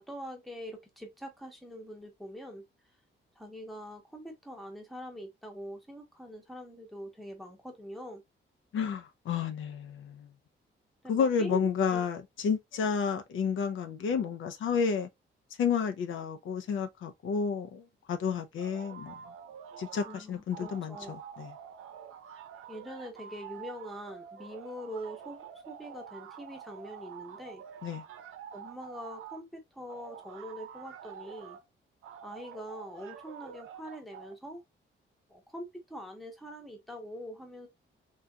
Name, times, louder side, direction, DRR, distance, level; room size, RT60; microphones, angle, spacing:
voice 1, 0.0-2.6 3.4-8.2 11.0-12.0 20.0-21.1 22.7-27.6 28.5-31.6 32.2-34.6 35.3-37.7, equal, ahead, 0.8 m, -43 dB
voice 2, 8.7-10.3 11.1-15.1 15.6-19.1 19.8-21.5 27.8-28.0, left 6 dB, 75° left, 0.6 m, -31 dB
sound 1, 18.6-20.2 20.5-29.4 29.9-31.6 32.0-34.3, right 9 dB, 85° right, 0.7 m, -47 dB
3.8 x 2.8 x 2.2 m
wide cardioid pair, 170°, 21 cm